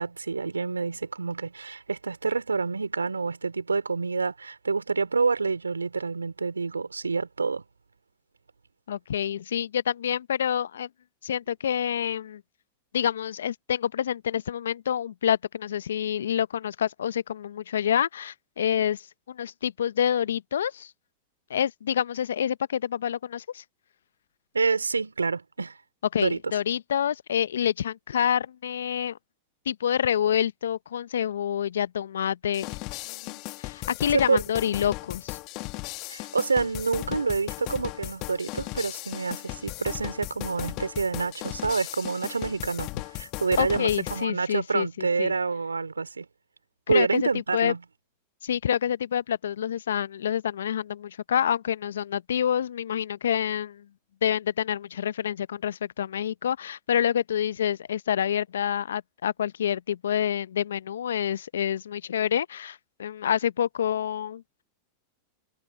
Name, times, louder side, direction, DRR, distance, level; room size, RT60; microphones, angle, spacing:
voice 1, 0.0-7.6 24.5-25.8 26.2-26.4 34.1-34.4 36.1-46.3 46.9-47.8, right 4 dB, 90° right, 3.6 m, -27 dB
voice 2, 8.9-10.9 11.2-12.4 12.9-20.9 21.5-23.6 26.1-29.2 29.7-32.7 33.1-35.4 43.6-45.3 46.9-47.7 48.4-53.8 54.2-64.4, left 9 dB, 75° left, 0.8 m, -27 dB
sound 1, 32.5-44.2, left 25 dB, 50° left, 1.5 m, -37 dB
hypercardioid pair, 95°, 0 cm